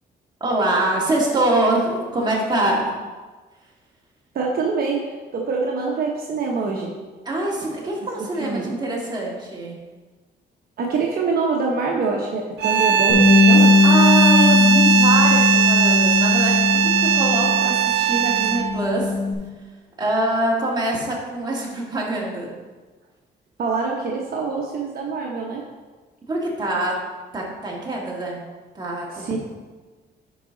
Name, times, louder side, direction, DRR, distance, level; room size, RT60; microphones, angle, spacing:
voice 1, 0.4-2.9 7.3-9.8 13.8-19.1 20.0-22.6 26.3-27.0 27.3-28.4 28.7-29.4, right 1 dB, 25° right, -4 dB, 2.1 m, -24 dB
voice 2, 4.3-5.0 5.3-6.9 8.2-8.7 10.8-13.8 23.6-25.6 29.1-29.4, right 4 dB, 55° right, -1 dB, 1.0 m, -25 dB
sound 1, 12.6-18.8, right 8 dB, 75° right, 0.6 m, -19 dB
Bass guitar, 13.1-17.8 18.1-19.3, left 3 dB, 65° left, 2.2 m, -18 dB
10.0 x 5.0 x 3.9 m, 1.3 s
cardioid pair, 125°, 18 cm